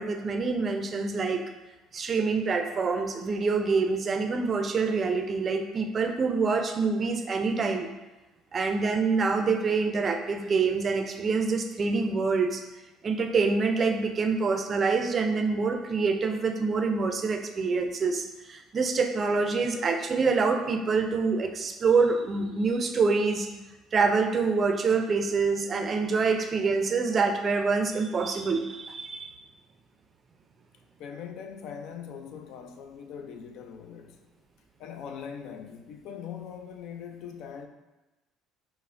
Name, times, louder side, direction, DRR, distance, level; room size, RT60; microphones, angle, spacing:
voice 1, 0.0-1.4 1.9-7.9 8.5-12.6 13.0-23.5 23.9-29.4, right 4 dB, 40° right, 0.4 m, -26 dB
voice 2, 31.0-34.2 34.8-37.7, left 7 dB, 70° left, 0.3 m, -41 dB
5.3 x 2.0 x 2.4 m
hypercardioid pair, 70°, 0 cm